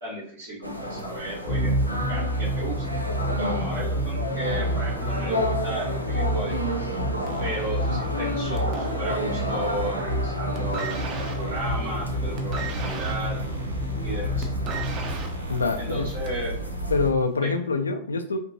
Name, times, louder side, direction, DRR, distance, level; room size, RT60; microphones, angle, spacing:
voice 1, 0.0-1.8 2.1-2.9 3.2-6.6 7.4-13.4 14.0-14.5 15.8-16.6 17.4-17.5, right 1 dB, 75° right, -7 dB, 1.1 m, -34 dB
sound 1, 0.6-17.1, equal, 90° right, 0.4 m, -31 dB
sound 2, 1.5-15.1, equal, 25° left, 0.6 m, -29 dB
sound 3, 7.3-9.6 9.9-10.3 10.5-16.5 17.3-17.4, right 5 dB, 35° right, 0.5 m, -38 dB
voice 2, 15.5-16.1 16.9-18.4, left 4 dB, 75° left, 7 dB, 0.3 m, -25 dB
2.9 x 2.5 x 2.6 m, 0.65 s
figure-of-eight pair, 90°, 0 cm